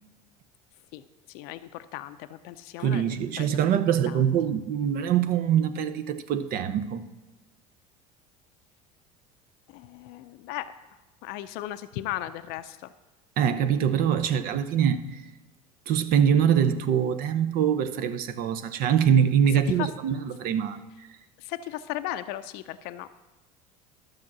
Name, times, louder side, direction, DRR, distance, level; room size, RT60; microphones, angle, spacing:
voice 1, 0.9-4.2 9.7-10.7 11.2-12.9 19.5-19.9 21.4-23.1, left 13 dB, 60° left, 0.5 m, -36 dB
voice 2, 2.8-7.0 13.4-15.2 15.9-20.8, right 8 dB, 55° right, 0.7 m, -24 dB
12.0 x 6.5 x 6.0 m
hypercardioid pair, 80°, 18 cm